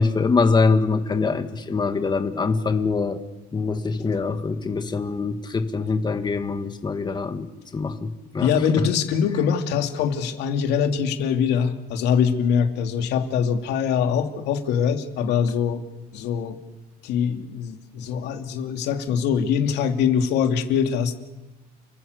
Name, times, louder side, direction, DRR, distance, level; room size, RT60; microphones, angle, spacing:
voice 1, 0.0-3.2 3.5-8.5, left 4 dB, 25° left, 7 dB, 2.0 m, -24 dB
voice 2, 8.4-15.8 16.1-16.6 17.0-21.2, left 7 dB, 85° left, 5 dB, 2.8 m, -23 dB
30.0 x 18.5 x 8.4 m, 1.1 s
cardioid pair, 110°, 17 cm